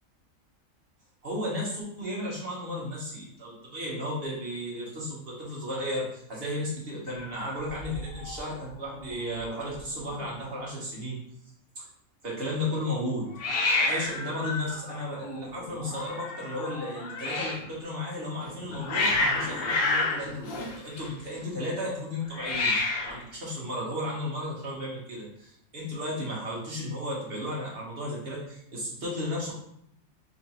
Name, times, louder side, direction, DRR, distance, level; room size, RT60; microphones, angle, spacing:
voice 1, 1.2-11.2 11.8-11.9 12.2-13.3 13.7-29.5, left 1 dB, 45° right, -5 dB, 1.3 m, -34 dB
Hiss, 7.1-8.4 8.7-9.1 9.4-9.5 9.7-10.4 13.4-17.7 18.4-21.4 22.3-23.2, left 2 dB, 60° left, 0.7 m, -30 dB
3.8 x 3.3 x 2.9 m, 0.74 s
omnidirectional pair, 1.4 m